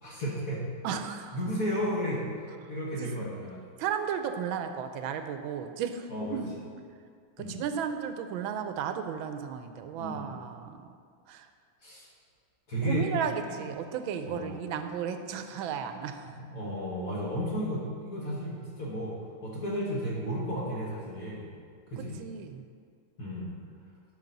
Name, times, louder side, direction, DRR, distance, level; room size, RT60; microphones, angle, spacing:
voice 1, 0.0-0.7 1.3-3.6 6.1-6.4 7.4-7.6 10.0-10.3 11.8-12.1 12.7-13.1 13.5-13.8 14.2-14.6 16.2-21.5 21.9-22.2 23.2-23.6, equal, 45° left, -5 dB, 1.8 m, -33 dB
voice 2, 0.8-1.4 3.0-3.3 3.8-6.1 6.3-6.5 7.4-10.8 11.3-11.5 12.9-16.2 22.0-22.6, right 7 dB, 85° right, 8 dB, 1.4 m, -34 dB
11.5 x 5.9 x 4.0 m, 2.2 s
omnidirectional pair, 2.1 m